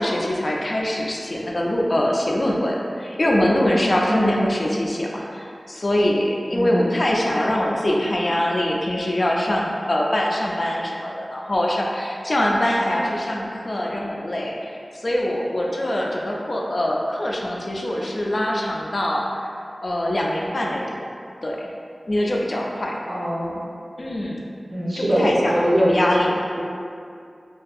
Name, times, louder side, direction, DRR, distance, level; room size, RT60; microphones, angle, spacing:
voice 1, 0.0-21.0 21.4-21.7 22.1-23.0 24.0-24.5 25.0-26.4, left 1 dB, 55° left, -2 dB, 0.3 m, -23 dB
voice 2, 6.5-6.9 23.1-23.6 24.7-25.9 26.6-26.7, equal, 65° right, -7 dB, 0.5 m, -22 dB
2.6 x 2.3 x 2.4 m, 2.3 s
wide cardioid pair, 65°, 0 cm